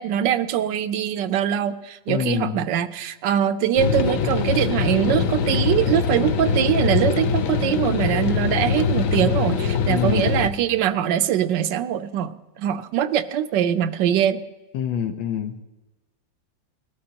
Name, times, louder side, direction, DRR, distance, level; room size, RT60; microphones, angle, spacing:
voice 1, 0.0-14.4, right 10 dB, 75° right, 12 dB, 1.2 m, -22 dB
voice 2, 2.1-2.6 9.9-10.3 14.7-15.5, left 8 dB, 85° left, 8 dB, 1.6 m, -26 dB
sound 1, 3.8-10.5, left 6 dB, 65° left, 0.8 m, -23 dB
20.5 x 13.0 x 2.8 m, 1.2 s
omnidirectional pair, 2.0 m